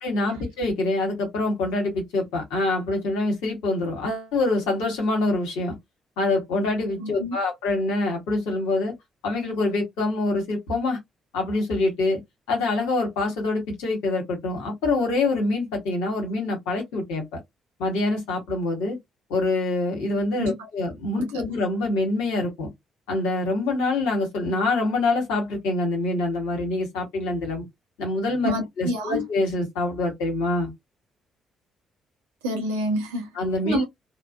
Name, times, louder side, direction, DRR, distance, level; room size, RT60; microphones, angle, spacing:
voice 1, 0.0-5.8 6.2-8.9 9.2-11.0 11.3-12.2 12.5-17.2 17.8-19.0 19.3-22.7 23.1-27.6 28.0-30.7 33.4-33.8, left 2 dB, 80° left, 1.1 m, -25 dB
voice 2, 7.0-7.4 20.4-20.6 21.1-21.4 28.4-29.2 32.4-33.3 33.6-33.8, equal, 90° right, 0.7 m, -27 dB
3.0 x 2.0 x 2.2 m
hypercardioid pair, 45°, 0 cm